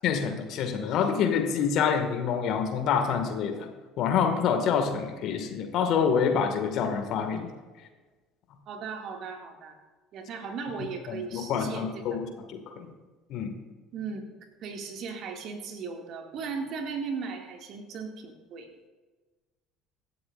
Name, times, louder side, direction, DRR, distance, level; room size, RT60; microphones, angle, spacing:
voice 1, 0.0-3.7 4.0-7.5 11.1-12.9 13.3-13.5, left 7 dB, 50° left, 5 dB, 2.0 m, -27 dB
voice 2, 8.7-9.8 10.1-12.2 13.9-14.3 14.6-18.7, right 5 dB, 50° right, 3 dB, 2.2 m, -37 dB
25.0 x 12.0 x 2.6 m, 1.3 s
figure-of-eight pair, 60°, 0 cm